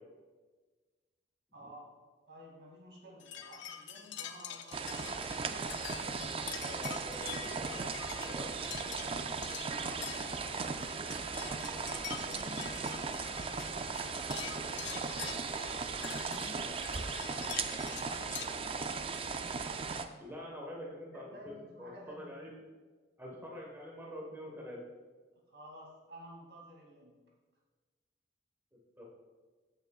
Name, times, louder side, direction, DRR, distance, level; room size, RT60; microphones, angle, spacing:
voice 1, 1.5-1.9 2.3-4.8 9.3-10.8 11.1-12.7 14.2-17.4 18.0-18.9 19.3-19.8 21.1-22.3 25.5-27.1, equal, 75° right, -2 dB, 2.5 m, -53 dB
sound 1, 3.2-18.5, left 9 dB, 80° left, 0.6 m, -46 dB
sound 2, 4.7-20.1, right 4 dB, 30° right, 0.4 m, -37 dB
voice 2, 6.6-7.9 8.2-8.6 20.2-22.5 23.2-24.8 29.0-29.1, equal, 10° right, -3 dB, 1.3 m, -46 dB
14.0 x 6.9 x 2.4 m, 1.4 s
head